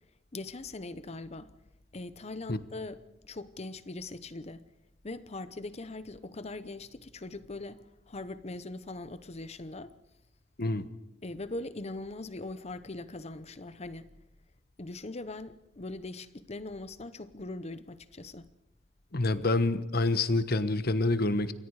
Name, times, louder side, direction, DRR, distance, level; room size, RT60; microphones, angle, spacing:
voice 1, 0.3-1.5 1.9-4.7 5.0-9.9 11.2-14.1 14.8-18.5, left 2 dB, 35° left, 0.8 m, -41 dB
voice 2, 19.1-21.5, left 2 dB, 55° left, 1.2 m, -27 dB
28.5 x 23.5 x 4.9 m
head